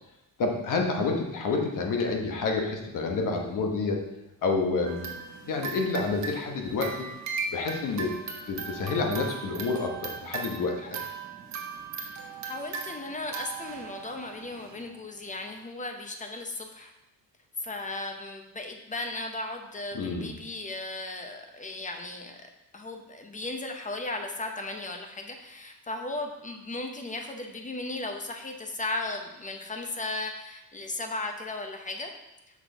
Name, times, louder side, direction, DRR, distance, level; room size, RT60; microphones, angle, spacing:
voice 1, 0.4-4.0 4.4-5.1 5.4-7.1 7.5-8.1 8.5-11.0 19.9-20.3, left 3 dB, 55° left, 2 dB, 1.1 m, -28 dB
sound 1, 4.8-14.8, right 5 dB, 45° right, 1.1 m, -38 dB
voice 2, 12.1-16.9 17.6-22.4 22.7-32.1, left 2 dB, 20° left, 4 dB, 0.6 m, -36 dB
6.0 x 6.0 x 3.4 m, 0.93 s
cardioid pair, 135°, 39 cm